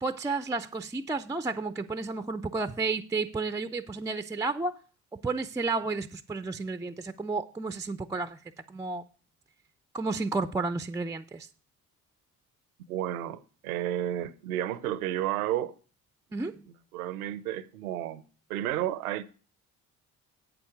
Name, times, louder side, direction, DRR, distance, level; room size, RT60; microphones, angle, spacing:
voice 1, 0.0-4.8 5.1-8.4 8.7-9.1 9.9-11.5 16.3-16.6, right 3 dB, 10° right, 0.3 m, -32 dB
voice 2, 12.9-15.7 16.9-18.2 18.5-19.2, right 12 dB, 80° right, 0.6 m, -31 dB
8.5 x 7.0 x 4.7 m
figure-of-eight pair, 45°, 43 cm